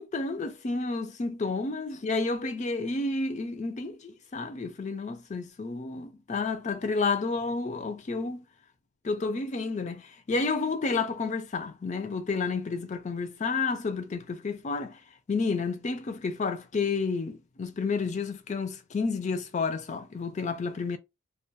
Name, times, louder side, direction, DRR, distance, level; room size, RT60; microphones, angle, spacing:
voice 1, 0.0-8.5 9.0-15.0 15.3-21.0, left 4 dB, 30° left, 0.3 m, -30 dB
2.3 x 2.2 x 2.7 m
head